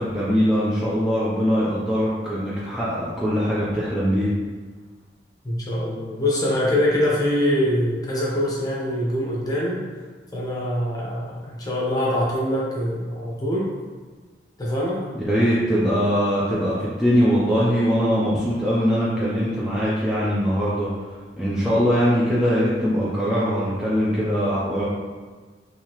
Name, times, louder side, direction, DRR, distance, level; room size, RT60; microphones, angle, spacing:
voice 1, 0.0-4.3 15.1-20.9 21.4-24.8, equal, 5° right, -9 dB, 0.4 m, -21 dB
voice 2, 5.4-9.8 10.3-13.7 14.6-15.0, left 1 dB, 20° left, -5 dB, 0.8 m, -24 dB
3.6 x 2.7 x 2.9 m, 1.4 s
head